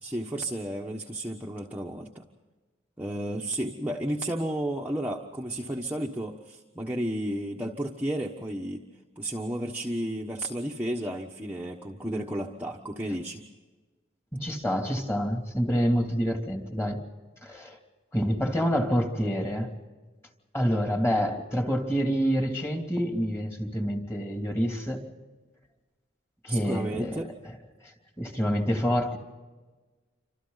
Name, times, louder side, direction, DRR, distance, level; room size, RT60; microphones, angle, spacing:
voice 1, 0.0-2.3 3.0-8.8 9.2-13.4 26.5-27.3, right 1 dB, 10° right, -1 dB, 1.2 m, -32 dB
voice 2, 14.3-17.0 17.4-17.8 18.1-19.7 20.5-25.0 26.4-27.3 27.8-27.9 28.2-29.2, equal, 10° left, 3 dB, 2.7 m, -27 dB
28.5 x 26.0 x 4.0 m, 1.3 s
head